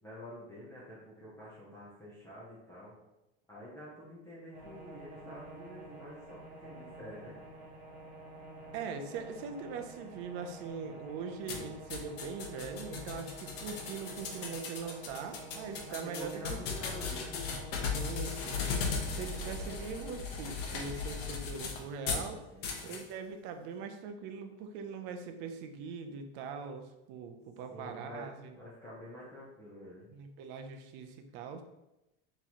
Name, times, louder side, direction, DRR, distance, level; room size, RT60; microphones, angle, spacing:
voice 1, 0.0-2.9 3.5-7.4 15.9-17.4 22.5-23.0 27.7-30.1, equal, 10° left, -8 dB, 0.6 m, -48 dB
sound 1, 4.5-20.1, right 2 dB, 25° right, 1.1 m, -50 dB
voice 2, 8.7-16.6 17.8-18.8 19.1-22.4 22.8-28.5 30.1-31.6, right 5 dB, 40° right, 6 dB, 0.4 m, -42 dB
sound 2, 11.5-22.3 22.6-23.0, left 5 dB, 75° left, 0.8 m, -37 dB
3.6 x 3.0 x 4.2 m, 0.93 s
cardioid pair, 175°, 30 cm